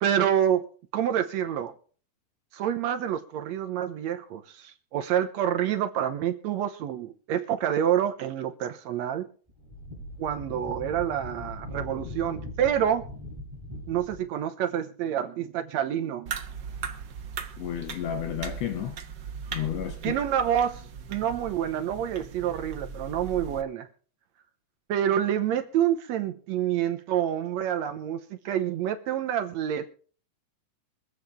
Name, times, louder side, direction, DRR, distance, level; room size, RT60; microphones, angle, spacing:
voice 1, 0.0-0.6 0.9-1.7 2.5-9.3 10.2-13.0 13.9-16.3 20.0-20.8 21.1-23.9 24.9-29.9, right 10 dB, 70° right, 1.9 m, -27 dB
Wind, 9.5-14.3, left 1 dB, 10° right, 3.2 m, -40 dB
sound 1, 16.3-23.6, right 6 dB, 85° right, 0.9 m, -39 dB
voice 2, 17.6-19.0 19.5-20.2, left 10 dB, 70° left, 1.7 m, -32 dB
24.0 x 8.1 x 3.5 m
omnidirectional pair, 3.6 m